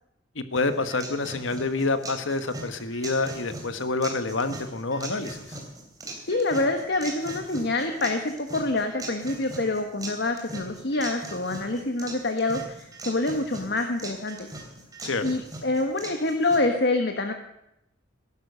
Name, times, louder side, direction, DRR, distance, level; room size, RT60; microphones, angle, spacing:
voice 1, 0.3-5.6 15.0-15.3, left 3 dB, 80° left, 10 dB, 1.3 m, -28 dB
sound 1, 0.6-16.6, right 2 dB, 20° right, 3.1 m, -40 dB
voice 2, 6.3-14.5 15.2-17.3, left 2 dB, 55° left, 5 dB, 1.3 m, -26 dB
17.0 x 11.5 x 6.8 m, 0.84 s
head